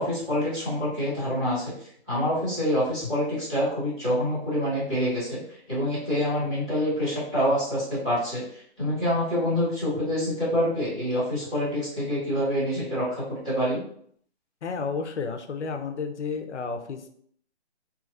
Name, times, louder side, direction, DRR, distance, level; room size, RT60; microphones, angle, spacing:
voice 1, 0.0-13.8, equal, 5° right, -18 dB, 0.9 m, -26 dB
voice 2, 14.6-17.1, left 5 dB, 85° left, 6 dB, 0.6 m, -32 dB
2.7 x 2.4 x 2.6 m, 0.63 s
hypercardioid pair, 180°, 34 cm